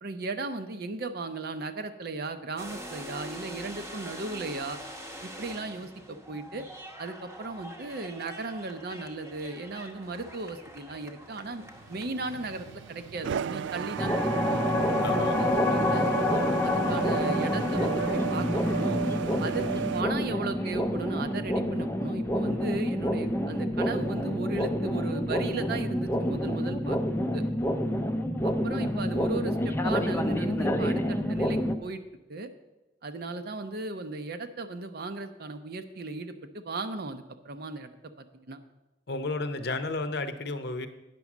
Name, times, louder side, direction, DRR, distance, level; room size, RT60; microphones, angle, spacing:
voice 1, 0.0-4.8 5.2-6.7 7.0-11.6 11.9-14.6 15.4-19.0 19.4-27.0 27.3-27.4 28.4-32.0 32.3-32.5 33.0-37.9 38.2-38.6, right 3 dB, 55° right, 8 dB, 0.7 m, -36 dB
sound 1, 2.6-14.4 15.3-19.0, equal, 15° right, 0.9 m, -46 dB
sound 2, 11.7-20.0, right 7 dB, 75° right, 0.3 m, -34 dB
sound 3, 14.0-31.7, left 1 dB, 15° left, 0.5 m, -28 dB
voice 2, 15.0-15.4 39.1-40.9, left 3 dB, 60° left, 10 dB, 0.7 m, -32 dB
9.3 x 6.1 x 7.1 m, 1.0 s
head